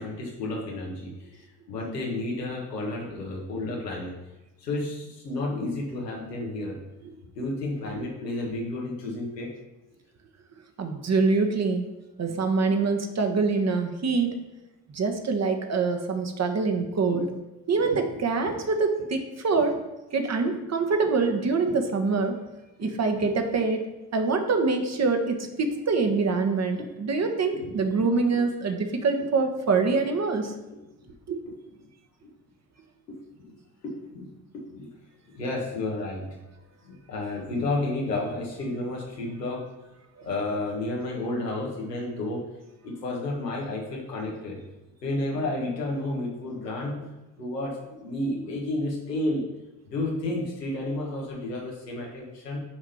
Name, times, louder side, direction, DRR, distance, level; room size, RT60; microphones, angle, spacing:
voice 1, 0.0-4.2 4.6-6.8 7.3-9.5 17.1-17.2 17.8-18.0 19.5-19.7 22.8-22.9 26.8-26.9 27.5-27.7 28.3-28.4 31.5-31.6 32.2-32.3 33.1-33.6 33.8-34.9 35.3-36.4 36.8-39.7 40.2-42.5 42.8-44.6 45.0-47.1 47.4-49.4 49.8-52.6, left 2 dB, 85° left, -3 dB, 1.5 m, -31 dB
voice 2, 10.8-11.9 12.2-14.4 14.9-17.3 17.7-19.8 20.1-22.4 22.8-23.8 24.1-30.5 31.3-31.4, right 4 dB, 35° right, 5 dB, 1.3 m, -25 dB
6.0 x 5.0 x 5.8 m, 1.0 s
figure-of-eight pair, 50°, 47 cm